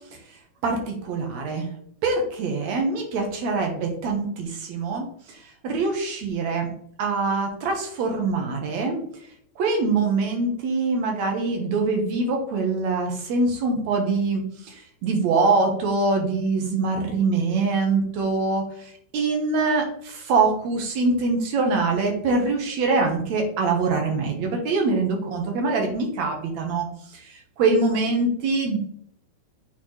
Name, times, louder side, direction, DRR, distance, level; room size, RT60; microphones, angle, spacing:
voice 1, 0.6-1.7 2.0-5.1 5.6-6.7 7.0-9.0 9.6-18.6 19.1-26.9 27.6-28.8, right 3 dB, 70° right, 3 dB, 2.3 m, -24 dB
8.3 x 4.2 x 3.0 m, 0.64 s
omnidirectional pair, 3.5 m